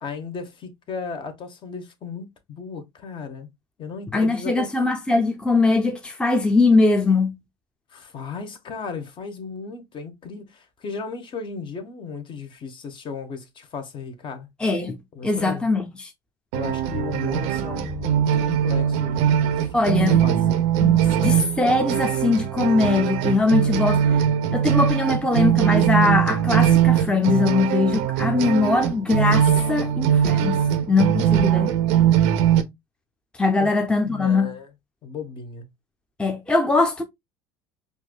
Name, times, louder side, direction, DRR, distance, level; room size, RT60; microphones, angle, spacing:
voice 1, 0.0-3.5 3.8-4.7 7.9-14.5 15.1-15.7 16.5-21.4 33.6-33.7 34.0-34.7 35.0-35.7, left 5 dB, 45° left, 1.1 m, -35 dB
voice 2, 4.1-7.4 14.6-16.1 19.7-20.2 20.8-24.2 24.5-31.7 33.4-34.5 36.2-37.0, left 3 dB, 10° left, 0.6 m, -21 dB
sound 1, 16.5-32.6, right 10 dB, 75° right, 0.5 m, -21 dB
4.4 x 2.6 x 2.2 m
supercardioid pair, 85°, 12 cm